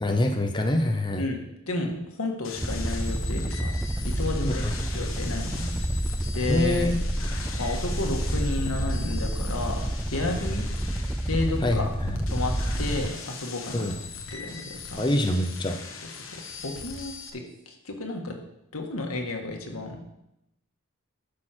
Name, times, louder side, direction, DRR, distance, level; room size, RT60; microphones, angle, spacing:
voice 1, 0.0-1.3 4.4-4.5 6.5-7.0 11.6-12.2 13.7-13.9 15.0-15.8, left 1 dB, 20° left, 4 dB, 0.7 m, -25 dB
voice 2, 1.2-3.7 4.0-4.7 4.9-5.7 6.3-6.9 7.6-10.7 11.3-11.9 12.3-13.9 14.3-15.1 16.2-18.4 18.7-20.1, left 2 dB, 90° left, 2 dB, 1.8 m, -32 dB
sound 1, 2.4-17.3, left 5 dB, 65° left, 1.3 m, -41 dB
sound 2, 2.5-13.2, right 1 dB, 5° right, 0.3 m, -29 dB
sound 3, 4.0-4.3 5.5-6.1 7.0-7.2 8.5-8.7 11.5-11.7 13.0-13.2 14.5-14.8 16.0-16.1 17.5-17.7, equal, 25° right, 2.0 m, -48 dB
12.0 x 6.5 x 4.5 m, 0.85 s
head